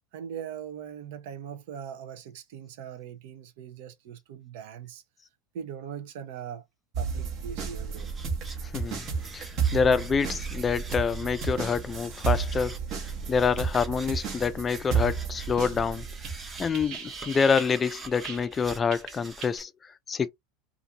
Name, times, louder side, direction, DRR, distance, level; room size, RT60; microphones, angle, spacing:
voice 1, 0.1-5.0 5.5-6.6 7.0-8.1, right 8 dB, 75° right, 0.5 m, -40 dB
sound 1, 6.9-18.6 18.9-19.6, right 6 dB, 50° right, 0.9 m, -32 dB
sound 2, 8.0-19.6, right 3 dB, 20° right, 0.7 m, -46 dB
voice 2, 8.7-9.0 9.3-12.8 13.3-16.1 16.6-19.7 20.1-20.3, left 6 dB, 25° left, 0.3 m, -26 dB
2.5 x 2.4 x 2.8 m
supercardioid pair, 110°, 0 cm